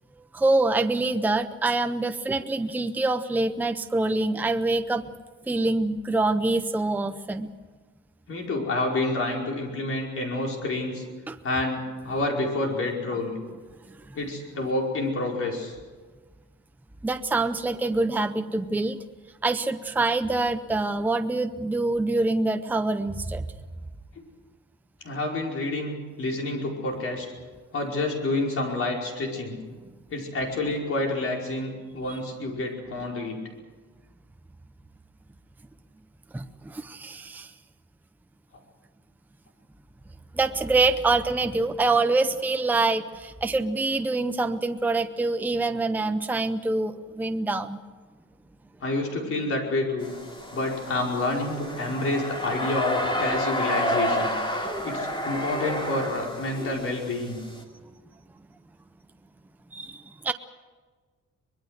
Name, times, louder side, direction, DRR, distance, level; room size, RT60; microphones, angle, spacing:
voice 1, 0.3-5.1 5.5-7.5 11.3-11.4 13.9-14.2 17.0-19.0 19.4-23.4 36.3-37.5 40.3-47.8 59.7-60.3, right 2 dB, 5° right, 8 dB, 0.6 m, -25 dB
voice 2, 8.3-11.0 11.4-13.4 14.1-15.8 25.0-27.3 27.7-29.6 30.1-33.4 48.8-50.1 50.5-54.3 54.8-57.4, left 2 dB, 50° left, 0 dB, 5.1 m, -28 dB
sound 1, 50.0-57.6, left 1 dB, 15° left, 2.8 m, -30 dB
24.0 x 21.0 x 6.5 m, 1.4 s
wide cardioid pair, 170°, 30 cm